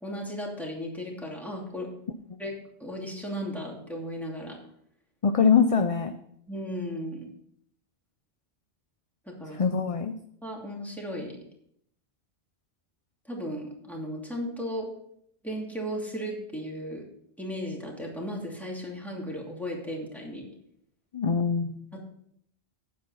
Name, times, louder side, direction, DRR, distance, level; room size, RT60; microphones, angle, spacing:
voice 1, 0.0-1.9 2.4-2.5 2.8-4.6 6.5-7.3 9.3-9.6 10.4-11.4 13.3-14.9 15.4-17.0 17.4-20.5 21.9-22.1, equal, ahead, -2 dB, 2.6 m, -35 dB
voice 2, 5.2-6.1 9.6-10.2 21.1-21.9, left 6 dB, 40° left, 8 dB, 0.6 m, -23 dB
9.5 x 7.7 x 5.6 m, 0.70 s
omnidirectional pair, 1.1 m